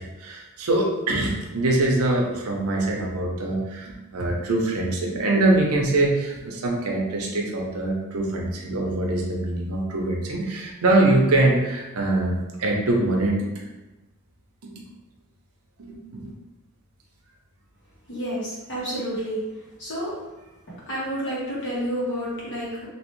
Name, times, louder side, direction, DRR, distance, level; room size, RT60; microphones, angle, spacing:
voice 1, 0.0-13.4 15.8-16.3, right 2 dB, 75° right, 0 dB, 0.7 m, -23 dB
voice 2, 18.1-19.4 19.8-20.1 20.7-22.9, equal, 55° left, -7 dB, 1.4 m, -30 dB
3.2 x 2.9 x 3.0 m, 1.1 s
head